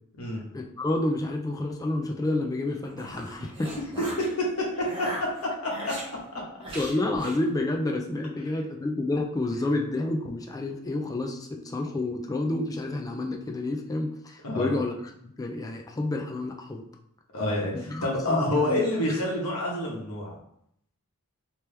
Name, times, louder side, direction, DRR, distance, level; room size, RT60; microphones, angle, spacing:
voice 1, 0.5-3.7 6.7-14.9 15.2-16.8 17.7-18.8, left 2 dB, 15° left, 2 dB, 0.3 m, -29 dB
sound 1, 2.7-4.3 4.7-6.1 6.6-7.4, right 1 dB, 25° right, 1.1 m, -38 dB
voice 2, 5.6-5.9 6.3-6.4 14.4-14.8 17.3-20.4, left 1 dB, 80° left, -2 dB, 1.1 m, -28 dB
3.2 x 2.9 x 3.3 m, 0.72 s
head